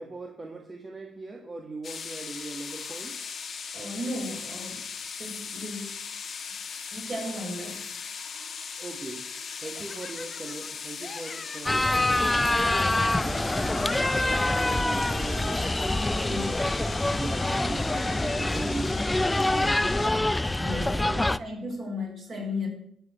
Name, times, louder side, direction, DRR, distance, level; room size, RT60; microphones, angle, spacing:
voice 1, 0.0-3.2 8.3-8.5 8.8-9.3 9.6-12.9 13.2-15.6 16.1-16.5 16.8-20.1 20.8-21.4, right 3 dB, 25° right, 1 dB, 1.6 m, -40 dB
sound 1, 1.8-20.1, left 6 dB, 50° left, 1.5 m, -39 dB
voice 2, 3.7-4.8 5.2-5.9 6.9-7.9 16.2-16.6 20.6-21.0 21.4-22.7, left 2 dB, 45° right, -2 dB, 5.9 m, -35 dB
Laughter, 9.6-10.7 11.0-11.9 12.3-15.1, left 4 dB, 35° left, 0.9 m, -43 dB
sound 2, 11.7-21.4, left 1 dB, 10° left, 0.4 m, -25 dB
13.5 x 5.1 x 8.0 m, 0.69 s
cardioid pair, 90°, 0 cm